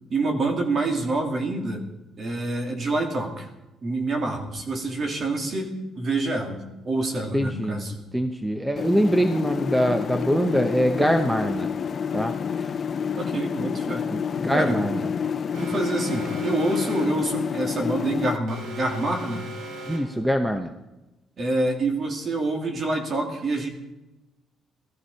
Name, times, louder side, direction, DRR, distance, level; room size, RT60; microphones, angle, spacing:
voice 1, 0.1-1.8 2.2-3.5 3.8-8.0 13.1-14.1 14.5-14.9 15.6-19.5 21.4-23.7, right 2 dB, 40° right, 3 dB, 2.9 m, -27 dB
voice 2, 7.3-7.8 8.1-11.7 12.1-12.7 14.1-15.1 19.9-20.7, equal, 5° right, 7 dB, 0.8 m, -24 dB
sound 1, 8.8-18.4, left 7 dB, 35° left, 0.6 m, -28 dB
Alarm, 15.5-17.3 18.5-20.3, equal, 85° right, 3.7 m, -38 dB
17.5 x 13.5 x 5.6 m, 1.0 s
cardioid pair, 140°, 0 cm